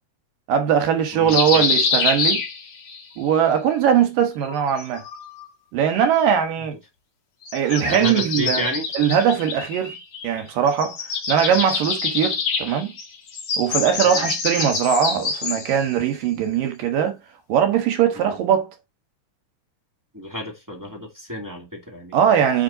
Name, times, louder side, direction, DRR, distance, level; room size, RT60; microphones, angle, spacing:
voice 1, 0.5-2.4 3.2-5.0 5.7-6.8 7.5-8.7 8.9-10.0 10.2-11.0 11.3-12.9 13.6-17.2 17.5-18.7 22.1-22.6, right 8 dB, 80° right, 3.0 m, -20 dB
voice 2, 1.1-1.7 7.9-8.9 14.0-14.3 18.1-18.4 20.1-22.2, left 1 dB, 10° right, 1.3 m, -31 dB
sound 1, 1.3-3.0 4.4-5.5 7.4-10.4 10.7-15.8, left 4 dB, 45° left, 2.4 m, -26 dB
9.1 x 4.3 x 3.9 m
omnidirectional pair, 3.9 m